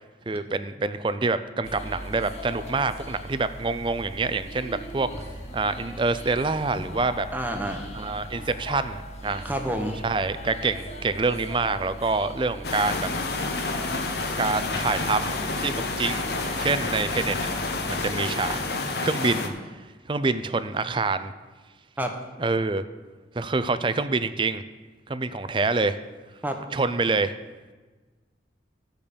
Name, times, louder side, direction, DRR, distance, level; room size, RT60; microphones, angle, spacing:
voice 1, 0.3-5.1 5.5-7.3 7.9-9.5 10.0-13.1 14.4-17.5 17.9-18.6 19.0-19.8 20.1-21.3 22.4-22.8 23.4-24.6 25.1-26.0 26.7-27.4, right 3 dB, 25° right, 13 dB, 0.4 m, -26 dB
sound 1, 1.6-18.2, equal, 35° left, 1.3 m, -39 dB
voice 2, 7.3-7.9 9.4-10.0 22.0-22.1 26.4-26.6, right 1 dB, 10° right, 4 dB, 0.9 m, -28 dB
sound 2, 12.6-19.5, left 3 dB, 60° left, 1.1 m, -29 dB
14.5 x 5.2 x 6.9 m, 1.3 s
head